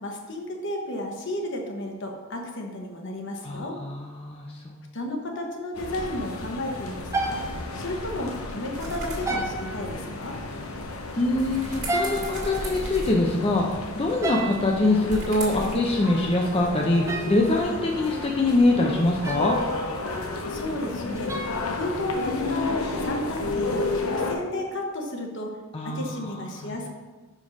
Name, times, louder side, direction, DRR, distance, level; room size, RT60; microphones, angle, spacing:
voice 1, 0.0-3.8 4.9-7.4 7.7-10.4 20.5-21.3 21.7-25.5 25.8-26.9, left 1 dB, 60° left, 1 dB, 1.1 m, -33 dB
voice 2, 3.4-4.7 11.2-19.6 25.7-26.0 26.6-26.8, left 2 dB, 25° left, 0 dB, 0.5 m, -24 dB
sound 1, 5.3-5.8 6.0-6.2 7.1-8.2 9.3-10.1 11.7-13.1 14.2-14.8 16.8-18.0 19.2-19.9 21.2-22.4, right 2 dB, 15° right, 0.5 m, -33 dB
sound 2, 5.7-24.3, left 2 dB, 85° left, 0.9 m, -32 dB
sound 3, 8.7-15.7, right 1 dB, 40° right, 1.8 m, -39 dB
5.5 x 5.1 x 5.2 m, 1.3 s
head